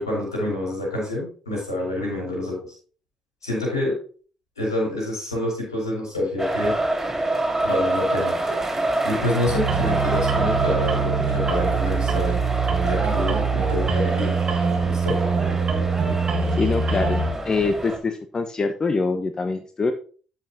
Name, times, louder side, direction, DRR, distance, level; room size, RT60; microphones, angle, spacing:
voice 1, 0.0-2.6 3.4-4.0 4.6-6.7 7.6-8.3 8.6-12.4 12.8-14.4 14.9-15.2, left 1 dB, 80° left, -3 dB, 4.0 m, -27 dB
sound 1, 6.4-18.0, right 2 dB, 15° right, 3.0 m, -27 dB
sound 2, 9.5-17.3, right 5 dB, 40° right, 2.1 m, -23 dB
voice 2, 16.5-19.9, left 3 dB, 30° left, 9 dB, 0.8 m, -24 dB
13.5 x 5.9 x 2.8 m, 0.40 s
figure-of-eight pair, 40°, 2 cm